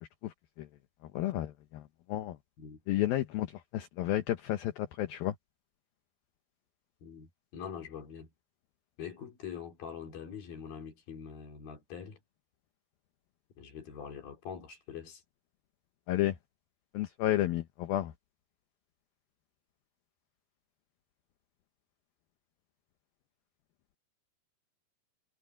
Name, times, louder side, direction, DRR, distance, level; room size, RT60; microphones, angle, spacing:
voice 1, 0.0-0.7 1.0-2.4 2.9-5.3 16.1-16.4 16.9-18.1, left 14 dB, 70° left, 2.3 m, -32 dB
voice 2, 7.0-8.3 9.0-12.2 13.6-15.2, left 7 dB, 55° left, 4.5 m, -44 dB
omnidirectional pair, 5.2 m